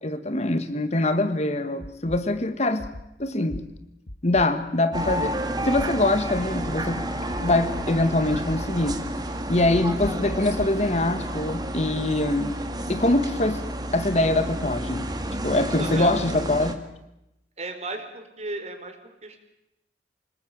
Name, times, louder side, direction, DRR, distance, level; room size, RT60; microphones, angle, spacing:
voice 1, 0.0-2.9 3.2-3.7 4.2-5.4 5.6-7.1 7.4-9.1 9.5-12.6 12.9-13.6 13.9-15.1 15.4-16.8, left 2 dB, 40° left, 10 dB, 1.5 m, -23 dB
sound 1, 1.8-2.2 2.8-3.0 3.5-3.6 4.1-4.4 4.9-5.3 5.8-5.9 6.3-6.7 7.3-7.8 8.3-9.0 9.6-10.7, left 1 dB, 70° left, 2.0 m, -36 dB
sound 2, 4.9-16.7, right 1 dB, 25° right, 2.2 m, -31 dB
voice 2, 15.6-16.1 17.6-19.4, right 2 dB, 40° right, 6 dB, 4.1 m, -35 dB
27.0 x 19.5 x 9.1 m, 0.89 s
head